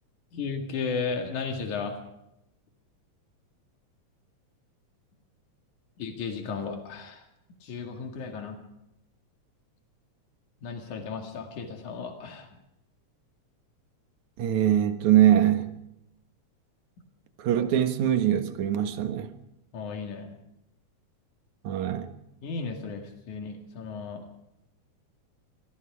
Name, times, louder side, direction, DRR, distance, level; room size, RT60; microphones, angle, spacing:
voice 1, 0.3-2.0 6.0-7.3 7.6-8.6 10.6-12.5 19.7-20.3 22.4-24.2, left 5 dB, 90° left, 3.5 m, -34 dB
voice 2, 14.4-15.7 17.4-19.3 21.6-22.1, right 11 dB, 80° right, 2.8 m, -23 dB
26.5 x 20.5 x 5.0 m
omnidirectional pair, 3.3 m